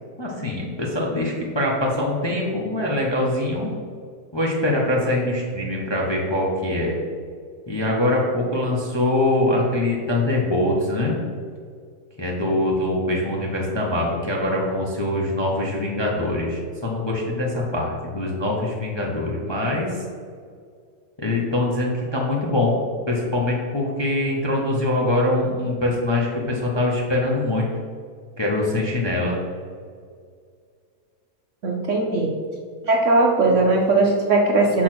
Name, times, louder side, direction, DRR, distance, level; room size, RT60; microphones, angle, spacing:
voice 1, 0.2-3.7 4.3-6.9 7.7-11.1 12.2-20.0 21.2-22.8 23.1-27.7 28.4-29.4, left 1 dB, 25° left, -3 dB, 0.6 m, -23 dB
voice 2, 31.6-32.3 32.9-34.8, right 2 dB, 60° right, 0 dB, 0.9 m, -19 dB
6.2 x 4.2 x 5.9 m, 2.1 s
omnidirectional pair, 1.8 m